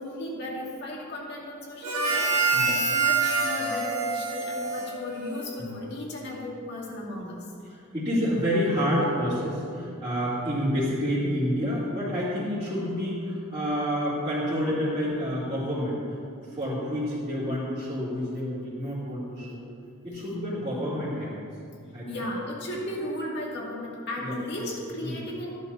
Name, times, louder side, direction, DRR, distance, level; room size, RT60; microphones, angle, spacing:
voice 1, 0.0-7.5 22.1-25.5, left 1 dB, 50° left, -3 dB, 2.1 m, -35 dB
Harmonica, 1.8-5.6, right 4 dB, 90° right, 1.9 m, -26 dB
voice 2, 7.7-16.0 16.5-19.6 20.0-21.5 21.9-22.2 24.2-24.6 25.0-25.2, equal, 25° right, -14 dB, 2.8 m, -29 dB
14.5 x 11.0 x 2.8 m, 2.4 s
head